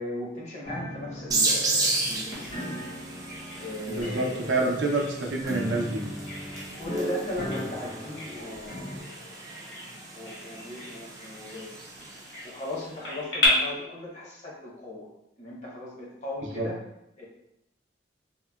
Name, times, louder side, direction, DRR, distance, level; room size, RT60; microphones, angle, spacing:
voice 1, 0.0-2.8 3.6-4.7 6.7-9.4 10.1-11.8 12.4-15.1 15.4-16.8 17.2-17.3, left 1 dB, 35° left, -3 dB, 0.7 m, -37 dB
sound 1, 0.6-9.0, left 1 dB, 90° left, 1.5 m, -38 dB
sound 2, 1.3-12.6, right 3 dB, 20° right, 0.3 m, -34 dB
Bird vocalization bird call bird song, 2.3-13.5, left 2 dB, 60° left, 1.1 m, -37 dB
voice 2, 3.9-6.0 16.6-16.7, right 2 dB, 75° right, 0 dB, 0.5 m, -27 dB
3.6 x 2.1 x 2.2 m, 0.83 s
head